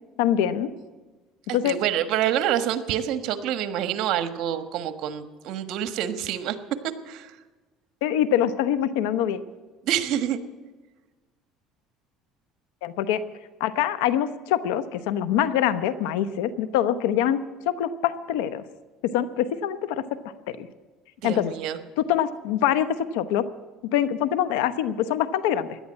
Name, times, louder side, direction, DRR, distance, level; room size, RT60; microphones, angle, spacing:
voice 1, 0.2-0.7 1.5-1.7 8.0-9.4 12.8-13.2 13.6-17.4 17.7-18.6 19.0-20.7 21.2-21.5 22.0-23.4 23.9-25.8, left 10 dB, 85° left, 12 dB, 1.0 m, -24 dB
voice 2, 1.5-6.6 7.0-7.3 9.8-10.4 21.2-21.8, right 10 dB, 65° right, 10 dB, 1.4 m, -27 dB
17.0 x 11.0 x 7.5 m, 1.3 s
supercardioid pair, 105°, 0 cm